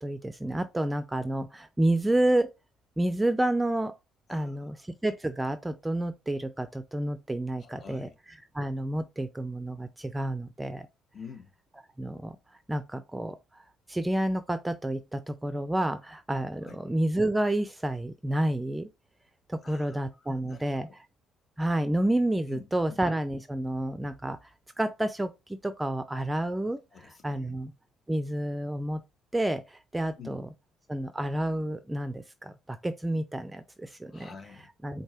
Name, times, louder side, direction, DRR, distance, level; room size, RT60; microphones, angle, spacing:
voice 1, 0.0-2.5 3.0-3.9 4.3-4.7 5.0-8.1 8.5-10.9 12.0-12.4 12.7-13.4 13.9-18.9 19.5-20.9 21.6-24.4 24.8-26.8 27.2-27.7 28.1-29.0 29.3-30.5 30.9-34.3 34.8-35.0, right 1 dB, 10° right, 0.5 m, -29 dB
voice 2, 4.3-4.8 7.6-8.1 11.1-11.5 16.6-16.8 19.6-20.9 22.5-23.0 26.9-27.6 30.2-30.4 34.1-34.7, left 6 dB, 40° left, 1.5 m, -48 dB
4.5 x 2.7 x 4.3 m
supercardioid pair, 65°, 0 cm